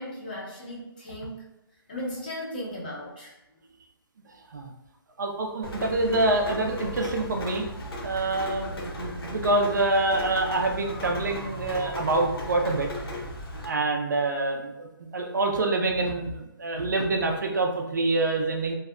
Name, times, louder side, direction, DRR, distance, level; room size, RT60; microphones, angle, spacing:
voice 1, 0.0-1.5 1.9-3.3, left 1 dB, 20° left, -5 dB, 0.5 m, -36 dB
voice 2, 4.3-4.7 5.2-7.7 8.0-12.9 13.6-18.8, right 2 dB, 50° right, 2 dB, 0.4 m, -26 dB
Rain, 5.6-13.6, equal, 85° left, 0.7 m, -36 dB
2.6 x 2.1 x 2.3 m, 0.94 s
hypercardioid pair, 175°, 12 cm